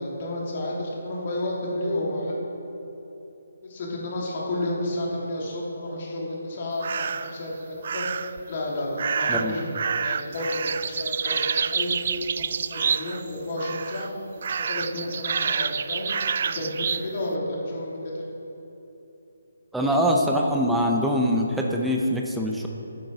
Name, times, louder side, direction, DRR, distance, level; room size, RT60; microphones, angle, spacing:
voice 1, 0.0-2.4 3.6-8.0 8.5-12.0 12.3-14.1 14.6-16.1 16.4-18.2, left 1 dB, 40° left, -3 dB, 2.7 m, -31 dB
sound 1, 6.8-7.4 7.8-8.4 9.0-13.3 13.6-14.1 14.4-17.1, right 6 dB, 45° right, 0.3 m, -28 dB
voice 2, 19.7-22.7, equal, 5° right, -1 dB, 0.7 m, -23 dB
13.0 x 9.3 x 3.9 m, 3.0 s
figure-of-eight pair, 145°, 0 cm